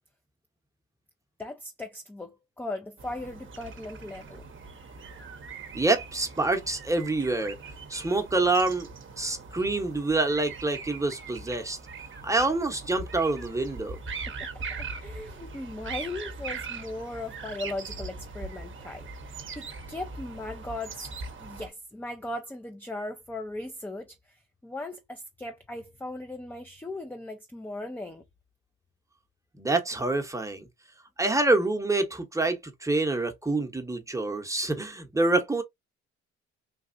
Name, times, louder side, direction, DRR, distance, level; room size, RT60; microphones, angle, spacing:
voice 1, 1.4-4.5 14.3-21.1 21.4-28.2, left 2 dB, 5° left, 0.5 m, -38 dB
sound 1, 3.0-21.7, right 4 dB, 40° right, 0.8 m, -41 dB
voice 2, 5.7-7.6 7.9-8.9 9.2-11.8 12.2-14.0 29.6-30.7 31.2-35.6, right 2 dB, 10° right, 0.9 m, -26 dB
3.4 x 2.3 x 2.5 m
supercardioid pair, 60°, 31 cm